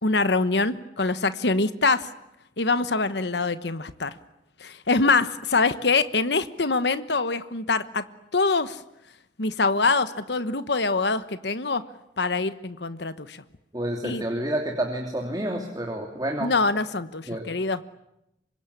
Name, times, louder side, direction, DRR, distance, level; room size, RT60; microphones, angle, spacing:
voice 1, 0.0-2.1 2.6-4.1 4.6-8.0 8.3-8.8 9.4-11.8 12.2-13.4 14.0-14.2 16.4-17.8, left 3 dB, 65° left, 13 dB, 1.2 m, -24 dB
voice 2, 13.7-16.5 17.3-17.4, right 1 dB, 20° right, 1 dB, 3.0 m, -29 dB
26.0 x 22.0 x 10.0 m, 0.86 s
head